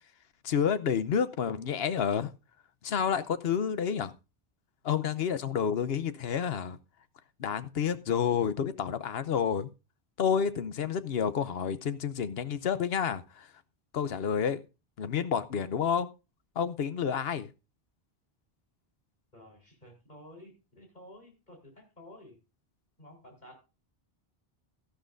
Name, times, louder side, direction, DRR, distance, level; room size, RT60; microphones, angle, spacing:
voice 1, 0.4-2.3 2.8-4.1 4.8-6.8 7.4-9.7 10.2-13.5 13.9-14.6 15.0-16.1 16.6-17.5, left 7 dB, 75° left, 1.0 m, -29 dB
voice 2, 19.3-22.4 23.0-23.6, left 1 dB, 45° left, 4.2 m, -52 dB
13.0 x 11.5 x 2.6 m
omnidirectional pair, 1.1 m